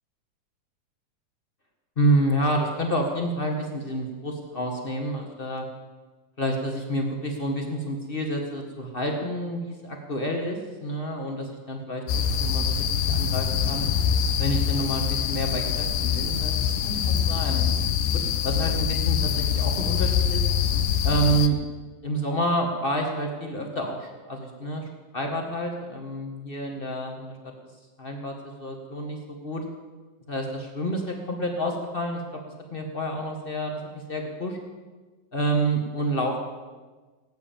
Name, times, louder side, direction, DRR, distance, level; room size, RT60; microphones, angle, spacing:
voice 1, 2.0-5.7 6.4-13.8 14.4-16.5 16.8-17.6 18.1-20.4 21.0-21.6 22.0-24.9 25.1-27.3 28.0-29.6 30.3-32.2 32.7-34.6 35.3-36.4, right 1 dB, 40° left, 2 dB, 0.7 m, -28 dB
sound 1, 12.1-21.5, left 8 dB, 75° left, 2.2 m, -24 dB
18.5 x 8.9 x 7.5 m, 1.3 s
omnidirectional pair, 3.9 m